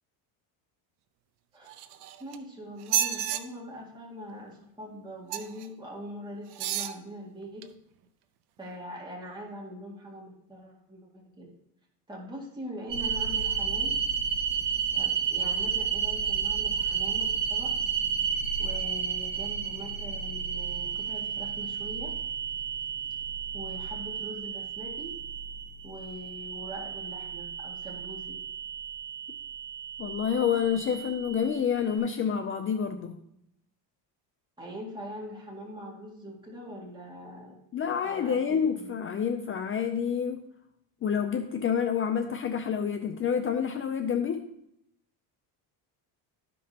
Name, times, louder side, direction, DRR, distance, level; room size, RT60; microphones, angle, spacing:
sound 1, 1.7-2.4 2.8-3.4 5.3-5.7 6.5-7.0 7.6-7.7, right 10 dB, 70° right, 0.7 m, -30 dB
voice 1, 2.2-7.6 8.6-11.5 12.1-13.9 14.9-17.7 18.6-22.1 23.5-25.1 25.8-28.4 34.6-37.5 38.0-38.4 38.7-39.0, equal, 10° right, -4 dB, 2.1 m, -42 dB
sound 2, 12.9-32.0, right 7 dB, 50° right, 1.6 m, -32 dB
voice 2, 30.0-33.2 37.7-40.4 41.0-44.5, left 7 dB, 30° left, 7 dB, 0.5 m, -28 dB
13.0 x 5.3 x 2.9 m, 0.76 s
cardioid pair, 130°, 41 cm